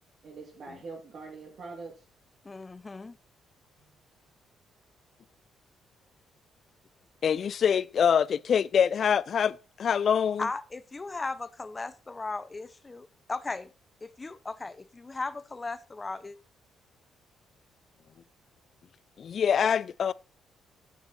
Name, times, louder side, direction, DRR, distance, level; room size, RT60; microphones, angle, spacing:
voice 1, 0.2-1.9 3.8-4.2, right 4 dB, 60° right, 2.7 m, -44 dB
voice 2, 2.4-3.2 10.4-13.7 14.0-16.4, left 3 dB, 25° left, 0.7 m, -37 dB
voice 3, 7.2-10.5 19.2-20.1, left 7 dB, 55° left, 0.4 m, -25 dB
9.2 x 6.6 x 4.3 m
cardioid pair, 90°, 0 cm